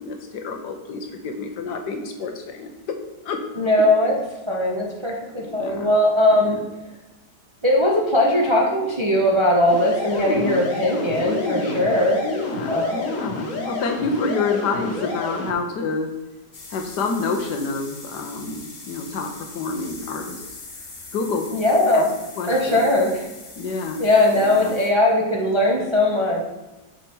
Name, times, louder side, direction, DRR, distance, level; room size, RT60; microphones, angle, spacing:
voice 1, 0.0-3.0 3.2-3.4 5.5-5.9 6.3-6.7 10.0-10.8 11.2-11.9 12.2-16.1 16.7-20.4 21.1-21.5 21.9-22.1 22.4-22.9 23.6-24.0 24.3-24.8, left 3 dB, 85° left, 4 dB, 1.5 m, -28 dB
voice 2, 3.6-4.2 4.5-6.6 7.6-12.3 12.7-13.0 21.5-22.1 22.5-23.3 24.0-26.4, left 1 dB, 25° right, -3 dB, 0.6 m, -19 dB
sound 1, 9.7-15.5, left 2 dB, 55° left, 1.5 m, -30 dB
sound 2, 16.5-24.9, left 3 dB, 35° left, 0.9 m, -41 dB
6.7 x 4.8 x 4.4 m, 1.1 s
omnidirectional pair, 1.8 m